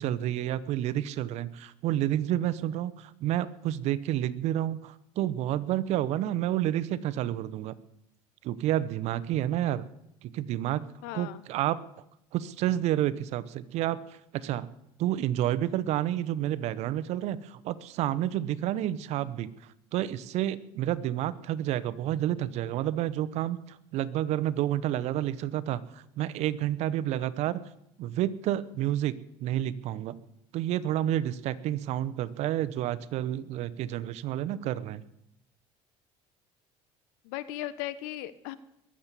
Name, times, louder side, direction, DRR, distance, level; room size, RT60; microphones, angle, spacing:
voice 1, 0.0-7.7 8.4-9.9 10.2-10.8 11.1-11.8 12.3-14.7 15.0-19.5 19.9-27.6 28.0-30.2 30.5-35.0, right 12 dB, 65° right, 16 dB, 0.9 m, -30 dB
voice 2, 11.0-11.4 37.2-38.6, left 14 dB, 90° left, 15 dB, 1.0 m, -37 dB
21.5 x 7.5 x 8.4 m, 0.80 s
cardioid pair, 115°, 12 cm